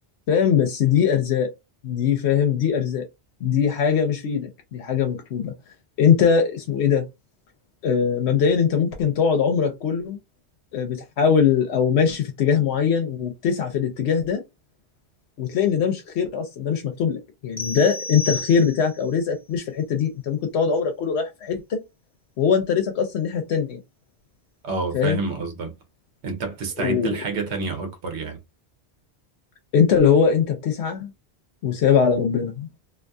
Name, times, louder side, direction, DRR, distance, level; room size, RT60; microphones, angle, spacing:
voice 1, 0.3-1.5 1.8-3.0 3.4-5.5 6.0-7.0 7.8-10.2 10.7-14.4 15.4-21.8 22.4-23.8 24.9-25.2 26.8-27.2 29.7-31.1 31.6-32.7, left 7 dB, 80° left, 0.9 m, -21 dB
sound 1, 17.6-19.1, left 2 dB, 15° left, 0.7 m, -32 dB
voice 2, 24.6-25.7 26.2-28.4, right 4 dB, 90° right, 1.0 m, -28 dB
2.5 x 2.3 x 2.5 m
omnidirectional pair, 1.1 m